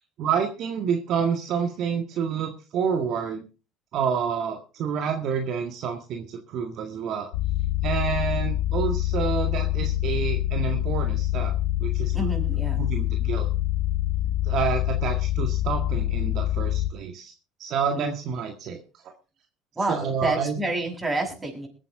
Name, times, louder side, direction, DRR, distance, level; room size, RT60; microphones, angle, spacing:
voice 1, 0.2-3.4 3.9-7.3 7.8-11.5 11.8-12.3 12.8-13.5 14.4-17.3 17.6-18.8 19.9-20.6, right 7 dB, 60° right, 4 dB, 1.8 m, -28 dB
sound 1, 7.3-16.9, left 14 dB, 80° left, 1.0 m, -25 dB
voice 2, 12.1-12.8 17.9-18.1 19.8-21.7, right 2 dB, 20° right, 2 dB, 7.2 m, -29 dB
21.5 x 8.9 x 3.7 m, 0.33 s
supercardioid pair, 80°, 0 cm